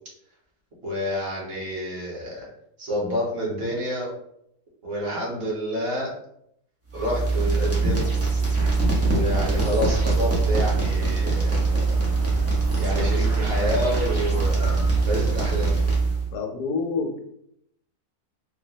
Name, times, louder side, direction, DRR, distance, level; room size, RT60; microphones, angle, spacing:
voice 1, 0.8-2.5 2.8-4.1 4.8-6.1 6.9-8.1 9.0-12.0 12.8-14.8 15.1-15.8, equal, 45° right, -4 dB, 1.2 m, -28 dB
sound 1, 6.9-16.3, right 3 dB, 20° right, 0.4 m, -23 dB
sound 2, 9.3-15.8, right 1 dB, 60° right, 0.7 m, -34 dB
voice 2, 16.3-17.3, left 4 dB, 90° left, 5 dB, 1.1 m, -28 dB
3.9 x 2.0 x 2.8 m, 0.74 s
omnidirectional pair, 1.6 m